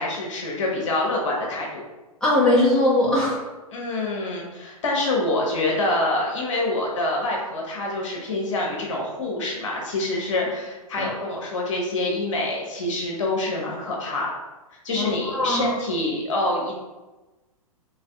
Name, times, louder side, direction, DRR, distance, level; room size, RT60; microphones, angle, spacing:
voice 1, 0.0-1.8 3.7-14.3 14.8-16.8, left 2 dB, 55° left, -2 dB, 1.3 m, -26 dB
voice 2, 2.2-3.4 11.0-11.1 15.0-15.7, left 1 dB, 5° left, -8 dB, 1.1 m, -20 dB
4.0 x 3.4 x 3.6 m, 1.1 s
figure-of-eight pair, 110°, 19 cm